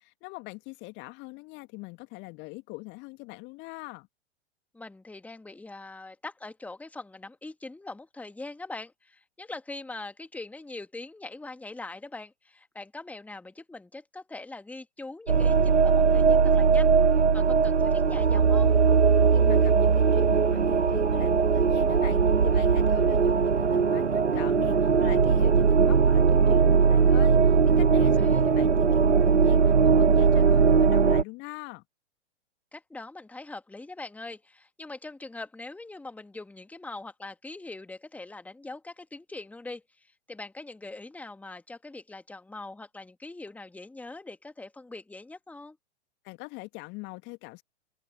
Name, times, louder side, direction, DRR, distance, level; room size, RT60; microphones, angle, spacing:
voice 1, 0.0-4.1 19.3-31.8 46.2-47.6, left 25 dB, 35° left, 2.0 m, -42 dB
voice 2, 4.7-18.8 27.9-28.5 32.7-45.8, left 2 dB, 5° left, 2.1 m, -42 dB
sound 1, 15.3-31.2, right 5 dB, 85° right, 0.7 m, -20 dB
open air
figure-of-eight pair, 105°, 34 cm